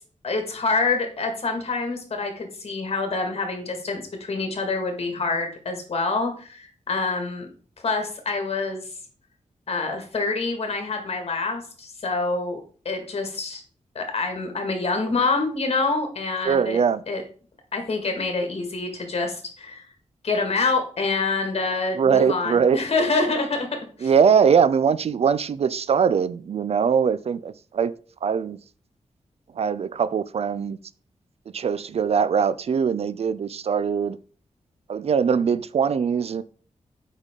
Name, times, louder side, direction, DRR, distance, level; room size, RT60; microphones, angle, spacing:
voice 1, 0.2-7.5 7.8-8.8 9.7-12.6 12.9-13.6 14.0-16.8 17.1-17.2 17.7-19.8 20.2-23.7 24.0-24.1, left 3 dB, 55° left, 1.9 m, -26 dB
voice 2, 16.4-17.0 21.9-22.8 24.0-27.9 28.2-28.6 29.6-30.8 31.5-34.2 34.9-36.4, right 6 dB, 55° right, 0.4 m, -21 dB
8.2 x 5.4 x 3.7 m
wide cardioid pair, 130°, 12 cm